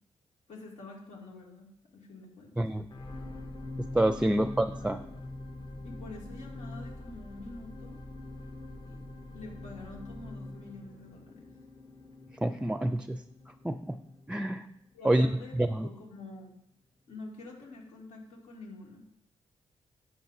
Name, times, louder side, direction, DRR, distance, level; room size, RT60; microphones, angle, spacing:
voice 1, 0.5-2.7 4.2-4.3 4.9-5.2 5.8-8.0 8.8-9.0 9.3-11.6 14.9-15.6 15.8-16.5 17.1-19.0, left 3 dB, 85° left, -2 dB, 2.6 m, -47 dB
sound 1, 2.9-15.3 15.9-16.0, left 2 dB, 40° left, 1.1 m, -44 dB
voice 2, 3.8-5.0 12.4-13.2 13.6-14.0 14.3-14.7 15.0-15.3 15.6-15.9, right 1 dB, 10° right, 9 dB, 0.5 m, -27 dB
10.5 x 8.2 x 2.8 m, 0.78 s
cardioid pair, 75°, 12 cm